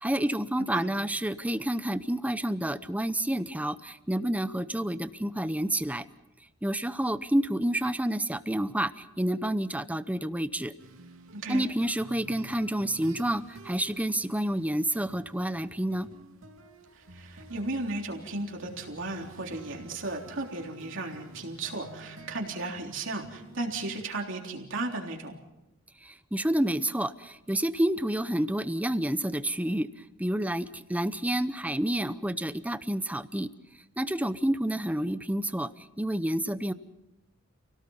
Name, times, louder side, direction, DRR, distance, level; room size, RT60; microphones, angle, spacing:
voice 1, 0.0-6.0 6.6-10.7 11.5-16.1 26.0-29.9 30.2-33.5 34.0-36.7, right 1 dB, 5° right, 13 dB, 0.7 m, -29 dB
sound 1, 10.8-24.0, right 2 dB, 85° right, 2.8 m, -51 dB
voice 2, 11.3-11.7 17.0-25.4, right 2 dB, 65° right, 1 dB, 3.5 m, -35 dB
29.5 x 18.0 x 5.7 m, 0.94 s
head